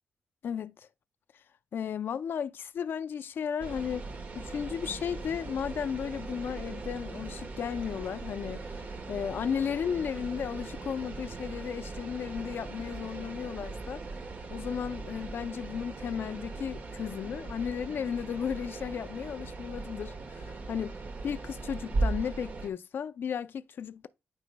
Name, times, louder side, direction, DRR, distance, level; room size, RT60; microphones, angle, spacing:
voice 1, 0.4-0.9 1.7-4.1 4.3-14.0 14.5-20.9 21.2-24.1, left 7 dB, 55° left, 0.4 m, -34 dB
sound 1, 3.6-22.7, right 3 dB, 45° right, 1.2 m, -39 dB
9.3 x 5.1 x 2.2 m
wide cardioid pair, 140°, 4 cm